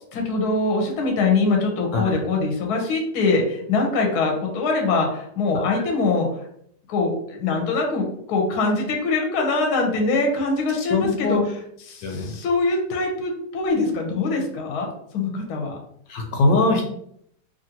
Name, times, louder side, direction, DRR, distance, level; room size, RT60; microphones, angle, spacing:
voice 1, 0.1-6.5 6.9-11.6 11.9-15.8, left 3 dB, 70° left, 1 dB, 1.2 m, -23 dB
voice 2, 10.9-11.4 12.0-12.3 16.1-16.8, left 3 dB, 90° left, 2 dB, 1.3 m, -21 dB
3.0 x 2.5 x 2.8 m, 0.68 s
omnidirectional pair, 1.9 m